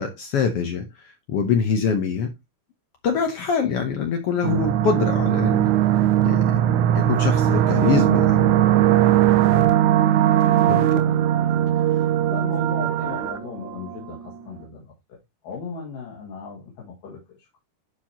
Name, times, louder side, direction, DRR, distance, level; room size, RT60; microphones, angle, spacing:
voice 1, 0.0-2.3 3.0-5.7 6.2-6.4 6.9-8.6 10.7-11.0, left 6 dB, 70° left, 1.5 m, -24 dB
sound 1, 4.4-14.2, right 12 dB, 75° right, 2.0 m, -19 dB
voice 2, 12.3-14.2 14.5-15.2 15.4-17.6, left 5 dB, 90° left, 3.6 m, -37 dB
12.0 x 4.6 x 2.8 m
omnidirectional pair, 3.7 m